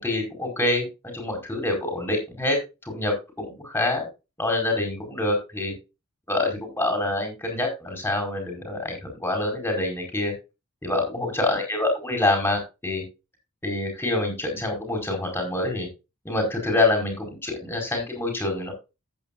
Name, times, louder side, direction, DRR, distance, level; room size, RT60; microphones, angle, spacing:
voice 1, 0.0-2.6 2.8-4.1 4.4-5.7 6.3-10.3 10.8-13.0 13.6-15.9 16.2-18.7, left 2 dB, 10° left, 2 dB, 4.7 m, -26 dB
15.0 x 8.8 x 2.4 m, 0.27 s
head